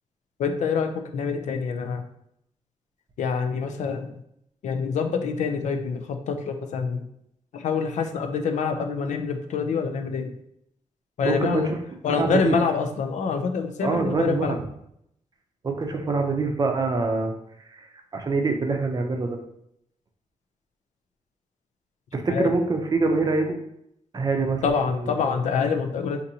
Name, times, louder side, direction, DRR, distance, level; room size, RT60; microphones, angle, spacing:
voice 1, 0.4-2.0 3.2-4.1 4.6-7.0 7.5-10.3 11.2-11.7 12.0-14.6 22.3-22.5 24.6-26.2, left 5 dB, 85° left, 5 dB, 0.4 m, -26 dB
voice 2, 11.2-11.8 12.1-12.5 13.8-14.6 15.6-17.3 17.7-19.4 22.1-23.6 24.1-25.1, right 3 dB, 35° right, 3 dB, 0.5 m, -25 dB
3.9 x 2.6 x 2.7 m, 0.75 s
wide cardioid pair, 120°, 12 cm